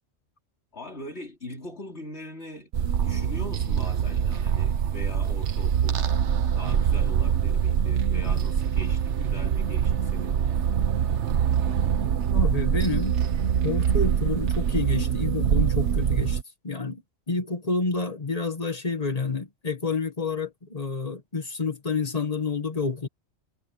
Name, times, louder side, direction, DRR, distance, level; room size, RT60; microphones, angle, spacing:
voice 1, 0.7-2.7 3.0-6.1 6.5-10.5 15.0-15.1, left 1 dB, 60° left, 4.0 m, -41 dB
sound 1, 2.7-16.4, right 8 dB, 65° right, 1.2 m, -24 dB
voice 2, 12.3-13.1 13.6-16.4 16.6-17.0 17.3-23.1, left 4 dB, 30° left, 1.6 m, -29 dB
omnidirectional pair, 1.3 m